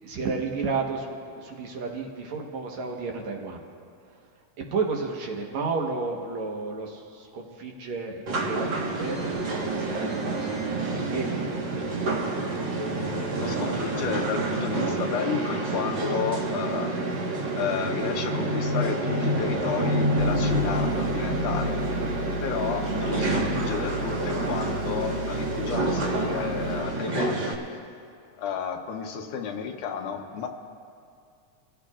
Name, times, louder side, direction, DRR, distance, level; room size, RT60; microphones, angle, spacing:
voice 1, 0.0-3.6 4.7-9.3 9.5-10.2 10.7-12.0, right 4 dB, 70° right, 0 dB, 2.5 m, -32 dB
sound 1, 8.3-27.5, right 2 dB, 45° right, 1.8 m, -28 dB
voice 2, 13.4-17.0 17.5-21.8 22.4-27.6 28.4-30.5, left 7 dB, 85° left, 4 dB, 2.5 m, -32 dB
sound 2, 20.2-26.8, left 2 dB, 65° left, 1.4 m, -35 dB
25.5 x 15.5 x 2.5 m, 2.3 s
omnidirectional pair, 3.4 m